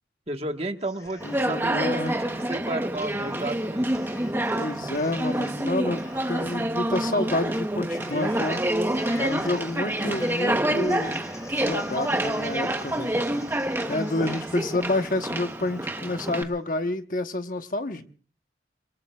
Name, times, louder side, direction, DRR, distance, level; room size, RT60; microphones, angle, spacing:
voice 1, 0.3-3.9, right 2 dB, 35° right, 5 dB, 1.4 m, -33 dB
Cheering, 0.8-1.7 2.0-16.3, left 1 dB, 20° left, 4.1 m, -47 dB
voice 2, 1.2-2.1 4.5-8.6 9.2-11.2 11.5-13.2 13.9-18.0, left 2 dB, 50° left, 7 dB, 1.1 m, -29 dB
Conversation, 1.2-16.4, right 1 dB, 10° right, 0.9 m, -27 dB
26.5 x 22.5 x 2.3 m, 0.39 s
head